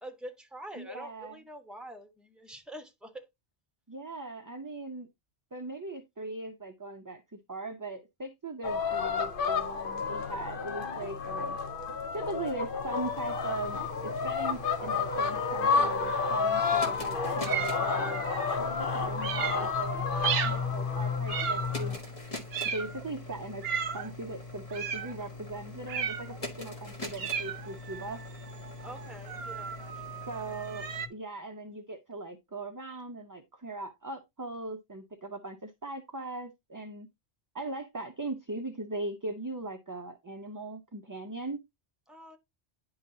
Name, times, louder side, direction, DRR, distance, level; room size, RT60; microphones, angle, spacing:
voice 1, 0.0-3.3 28.8-30.2 42.1-42.4, right 1 dB, ahead, 1.1 m, -46 dB
voice 2, 0.8-1.4 3.9-5.1 5.5-11.6 12.1-18.2 18.9-22.0 22.7-23.6 23.9-28.2 30.3-37.1 37.5-41.6, right 2 dB, 25° right, 0.5 m, -39 dB
sound 1, 8.6-22.0, left 5 dB, 55° left, 0.9 m, -30 dB
sound 2, 12.6-31.1, left 2 dB, 35° left, 1.3 m, -44 dB
sound 3, 17.4-18.6 19.2-19.7 20.2-20.7 21.3-21.9 22.5-23.1 23.6-24.1 24.7-25.2 25.9-26.4 27.2-31.1, right 7 dB, 65° right, 0.9 m, -35 dB
10.0 x 4.7 x 2.7 m
omnidirectional pair, 1.1 m